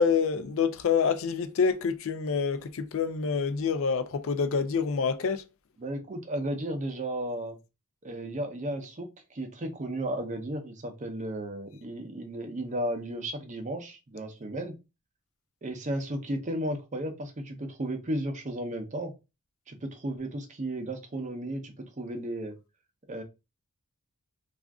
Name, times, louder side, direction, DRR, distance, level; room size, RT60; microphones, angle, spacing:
voice 1, 0.0-5.4, left 5 dB, 60° left, 0.4 m, -27 dB
voice 2, 5.8-7.6 8.0-14.7 15.6-19.1 19.7-22.5 23.1-23.2, right 1 dB, 35° right, 0.6 m, -34 dB
2.4 x 2.4 x 3.4 m
head